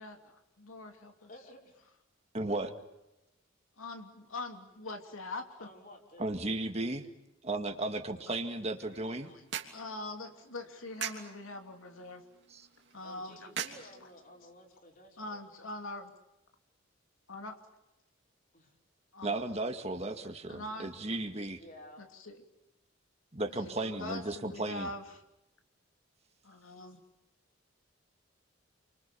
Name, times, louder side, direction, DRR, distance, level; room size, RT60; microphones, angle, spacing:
voice 1, 0.0-1.3 3.8-5.7 9.2-9.4 9.7-12.2 12.9-13.4 15.2-16.1 17.3-17.6 19.1-19.3 20.5-20.9 22.0-22.4 23.5-25.2 26.4-27.0, left 2 dB, 90° left, 5 dB, 3.0 m, -43 dB
voice 2, 1.3-1.8 5.6-6.3 13.0-15.4 18.5-18.8 21.6-22.0 26.9-27.0, left 1 dB, 40° left, 1 dB, 5.3 m, -53 dB
voice 3, 2.3-2.7 6.2-7.0 7.4-9.3 12.5-12.7 19.2-21.6 23.3-24.9, right 2 dB, 30° right, 6 dB, 2.0 m, -35 dB
sound 1, 8.6-14.6, right 8 dB, 55° right, 3.2 m, -44 dB
29.5 x 25.0 x 7.0 m, 0.92 s
head